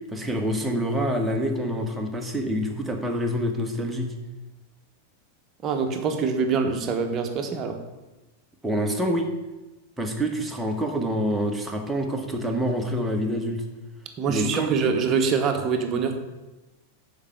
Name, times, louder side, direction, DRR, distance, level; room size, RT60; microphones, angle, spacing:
voice 1, 0.1-4.1 8.6-9.3 10.0-13.6 14.3-14.7, equal, 5° right, 2 dB, 1.2 m, -26 dB
voice 2, 5.6-7.8 14.2-16.2, right 5 dB, 30° right, 5 dB, 1.1 m, -24 dB
7.1 x 4.8 x 6.9 m, 1.1 s
figure-of-eight pair, 90°, 0 cm